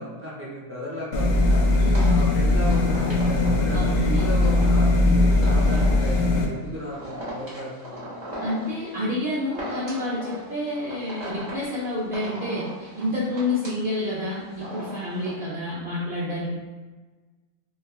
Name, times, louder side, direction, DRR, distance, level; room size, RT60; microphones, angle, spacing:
voice 1, 0.0-1.6 2.0-8.1, equal, 15° right, -7 dB, 0.5 m, -35 dB
sound 1, 1.1-6.5, left 2 dB, 70° left, 0.8 m, -20 dB
sound 2, 1.5-15.3, equal, 35° right, 1.1 m, -38 dB
voice 2, 1.8-2.1 3.7-4.3 8.4-16.5, left 1 dB, 50° right, -9 dB, 0.7 m, -29 dB
4.6 x 2.2 x 2.3 m, 1.3 s
omnidirectional pair, 1.4 m